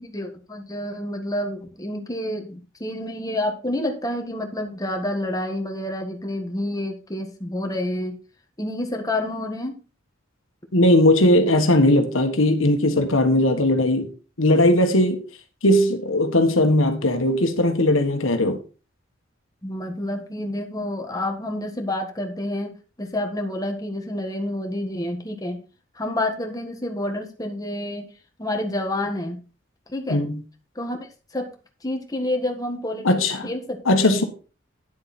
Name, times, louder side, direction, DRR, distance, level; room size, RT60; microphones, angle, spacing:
voice 1, 0.0-8.2 8.6-9.8 19.6-25.6 25.9-28.1 28.4-29.4 29.9-30.2 30.7-31.0 31.3-31.5 31.8-33.2 33.4-33.8, left 1 dB, 20° left, 1.6 m, -28 dB
voice 2, 10.7-14.1 14.4-15.2 15.6-18.6 30.1-30.4 33.0-33.5 33.8-34.2, left 1 dB, 80° left, 1.5 m, -18 dB
10.0 x 7.6 x 4.3 m
head